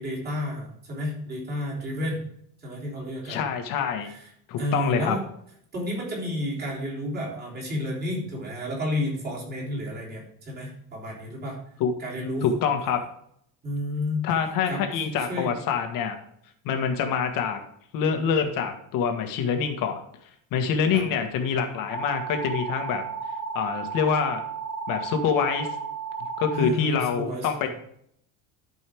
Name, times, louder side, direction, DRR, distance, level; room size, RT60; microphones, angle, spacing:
voice 1, 0.0-2.2 2.6-3.4 4.0-4.3 4.6-5.2 5.7-11.6 12.0-12.5 13.6-14.2 14.7-15.5 20.9-21.0 26.5-27.7, left 1 dB, 25° right, -3 dB, 3.4 m, -31 dB
voice 2, 3.2-4.1 4.5-5.2 11.8-11.9 12.4-13.0 14.2-16.1 16.6-17.6 17.9-20.0 20.5-23.0 23.5-24.4 24.9-25.7 26.4-27.7, left 6 dB, 55° left, 5 dB, 1.6 m, -25 dB
sound 1, 21.9-26.7, right 5 dB, ahead, 1.4 m, -33 dB
12.5 x 5.4 x 3.5 m, 0.67 s
cardioid pair, 170°, 38 cm